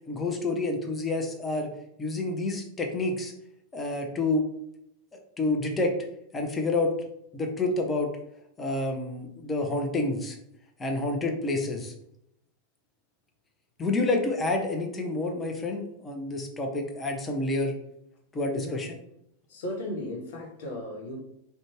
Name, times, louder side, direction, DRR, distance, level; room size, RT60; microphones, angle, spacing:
voice 1, 0.1-1.7 2.0-3.3 3.7-4.4 5.4-5.9 6.3-6.9 7.3-8.2 8.6-10.4 10.8-11.9 13.8-17.7 18.3-18.9, left 2 dB, 15° left, 2 dB, 0.5 m, -28 dB
voice 2, 18.5-18.8 19.5-21.2, left 1 dB, 55° left, 1 dB, 0.7 m, -36 dB
2.5 x 2.2 x 3.0 m, 0.78 s
figure-of-eight pair, 90°, 0 cm